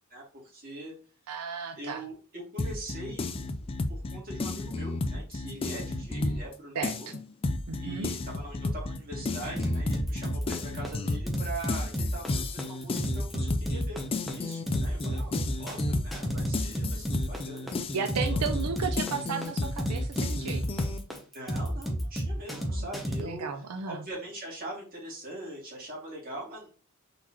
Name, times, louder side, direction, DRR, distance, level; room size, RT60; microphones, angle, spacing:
voice 1, 0.1-0.9 1.8-3.2 3.9-7.1 7.8-14.0 14.3-15.3 15.6-18.0 18.3-18.4 21.3-23.5 23.8-26.7, right 1 dB, 40° right, -5 dB, 2.5 m, -42 dB
voice 2, 1.3-2.0 6.8-7.2 7.7-8.1 17.9-20.7 22.5-22.9 23.2-24.0, right 6 dB, 90° right, 6 dB, 0.5 m, -34 dB
sound 1, 2.6-6.5 6.8-21.0, left 2 dB, 25° left, 0.4 m, -33 dB
sound 2, 9.6-23.2, equal, ahead, 0.8 m, -31 dB
4.3 x 4.0 x 3.0 m, 0.37 s
head